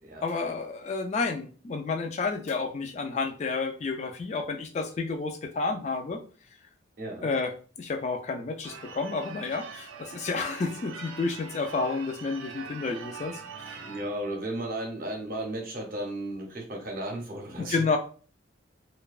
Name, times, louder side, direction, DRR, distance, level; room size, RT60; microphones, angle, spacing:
voice 1, 0.2-6.2 7.2-7.5 7.8-13.7 17.6-18.0, left 4 dB, 35° left, 4 dB, 0.3 m, -30 dB
voice 2, 7.0-7.3 13.8-17.8, right 1 dB, 45° right, 2 dB, 0.7 m, -35 dB
Church bell / Car / Alarm, 8.6-14.2, right 6 dB, 90° right, 0.4 m, -43 dB
2.7 x 2.2 x 2.3 m, 0.39 s
head